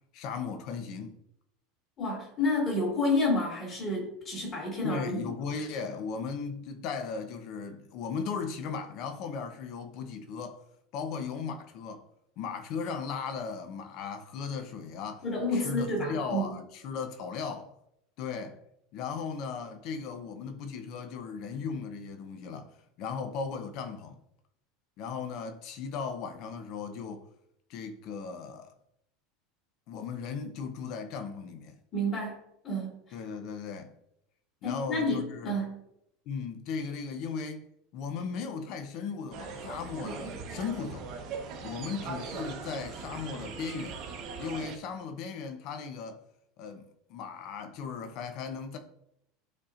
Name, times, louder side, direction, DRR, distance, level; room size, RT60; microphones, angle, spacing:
voice 1, 0.1-1.2 4.8-10.6 10.9-12.0 12.4-15.2 15.5-17.7 18.2-18.6 18.9-22.7 23.0-24.2 25.0-27.3 27.7-28.7 29.9-31.7 33.1-34.0 34.6-35.6 36.3-37.7 37.9-41.1 41.6-44.0 44.4-46.2 46.6-48.8, left 5 dB, 40° left, 0.7 m, -37 dB
voice 2, 2.0-5.3 15.2-16.6 31.9-33.0 34.6-35.8, left 1 dB, 25° left, 2.3 m, -30 dB
sound 1, 39.3-44.8, right 5 dB, 40° right, 0.9 m, -40 dB
12.0 x 4.2 x 2.5 m
supercardioid pair, 180°, 0 cm